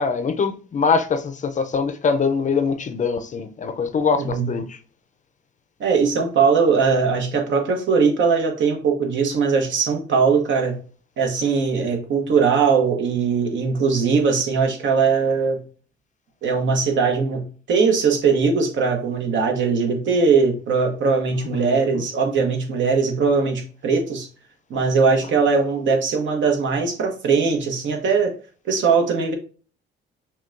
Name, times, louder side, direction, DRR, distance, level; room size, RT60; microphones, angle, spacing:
voice 1, 0.0-4.8 21.3-22.0, left 5 dB, 40° left, 0.5 m, -23 dB
voice 2, 4.2-4.5 5.8-10.8 11.2-15.6 16.4-24.3 24.7-28.3 28.6-29.3, right 5 dB, 70° right, 1.0 m, -20 dB
5.7 x 2.3 x 2.5 m
cardioid pair, 90°, 20 cm